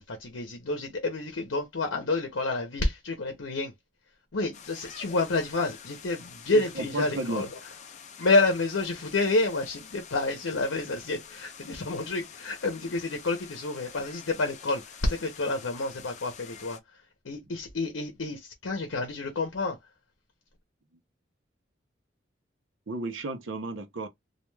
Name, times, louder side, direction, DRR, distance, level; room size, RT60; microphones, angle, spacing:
voice 1, 0.0-3.7 4.3-7.6 8.2-19.8, left 2 dB, 85° left, 0.7 m, -29 dB
sound 1, 4.5-16.8, left 7 dB, 35° left, 0.3 m, -47 dB
voice 2, 6.5-7.4 22.9-24.1, right 2 dB, 85° right, 0.7 m, -33 dB
2.3 x 2.2 x 3.1 m
head